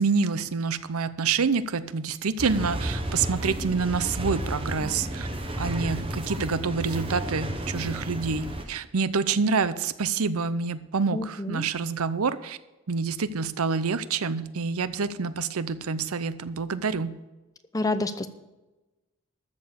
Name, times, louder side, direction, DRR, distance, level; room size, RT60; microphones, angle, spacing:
voice 1, 0.0-5.3 5.6-12.6 12.9-17.1, right 5 dB, 85° right, 14 dB, 0.7 m, -27 dB
sound 1, 2.4-8.6, right 1 dB, 25° right, 1.2 m, -32 dB
voice 2, 11.1-11.7 17.7-18.3, left 2 dB, 15° left, 10 dB, 0.6 m, -28 dB
13.5 x 7.0 x 6.7 m, 1.1 s
head